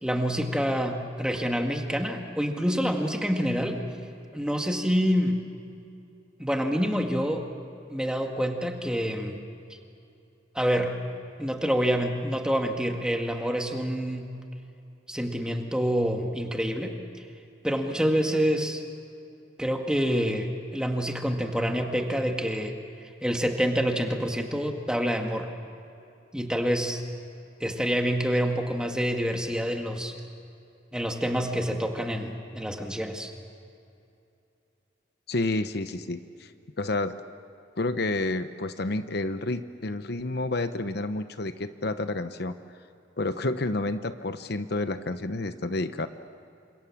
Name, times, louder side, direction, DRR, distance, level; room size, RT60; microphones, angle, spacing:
voice 1, 0.0-3.8 4.3-5.4 6.4-7.5 7.9-9.4 10.6-11.0 11.4-14.3 15.1-17.0 17.6-18.8 19.6-22.8 23.2-25.5 26.3-27.0 27.6-30.2 30.9-33.3, equal, 5° right, 3 dB, 1.9 m, -27 dB
voice 2, 35.3-36.5 36.8-37.2 37.8-42.5 43.2-46.1, left 2 dB, 60° left, 10 dB, 0.9 m, -30 dB
28.5 x 26.5 x 7.3 m, 2.6 s
head